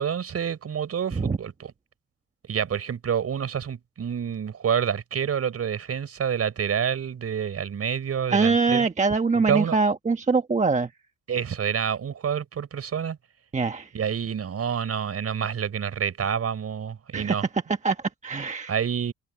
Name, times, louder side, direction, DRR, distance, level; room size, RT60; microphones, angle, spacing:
voice 1, 0.0-1.7 2.5-8.9 9.5-9.8 11.3-13.2 13.9-17.5 18.7-19.1, right 8 dB, 50° right, 5.2 m, -28 dB
voice 2, 8.3-10.9 13.5-13.9 17.1-18.7, right 4 dB, 25° right, 1.2 m, -23 dB
cardioid pair, 90°, 30 cm